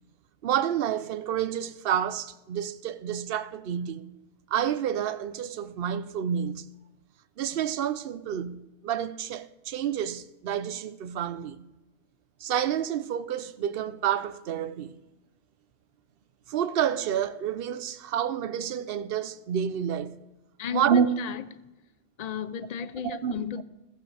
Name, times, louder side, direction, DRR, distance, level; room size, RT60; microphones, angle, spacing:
voice 1, 0.4-4.2 4.5-6.7 7.4-11.7 12.4-15.0 16.5-20.2 20.7-21.1 23.0-23.6, right 9 dB, 55° right, 0.8 m, -29 dB
voice 2, 22.2-23.6, left 8 dB, 45° left, 0.5 m, -34 dB
15.5 x 15.0 x 3.4 m
omnidirectional pair, 1.3 m